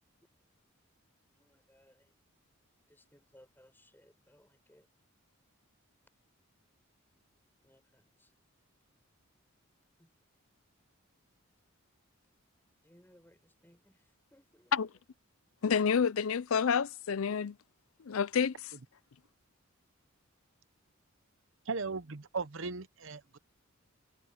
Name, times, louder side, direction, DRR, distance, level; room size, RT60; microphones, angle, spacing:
voice 1, 1.4-2.1 2.9-4.9 7.6-8.3 10.0-10.1 12.8-15.0, equal, 10° left, 5.9 m, -64 dB
voice 2, 15.6-17.5 18.1-18.5, left 6 dB, 75° left, 0.5 m, -28 dB
voice 3, 21.7-23.4, right 4 dB, 60° right, 0.9 m, -37 dB
head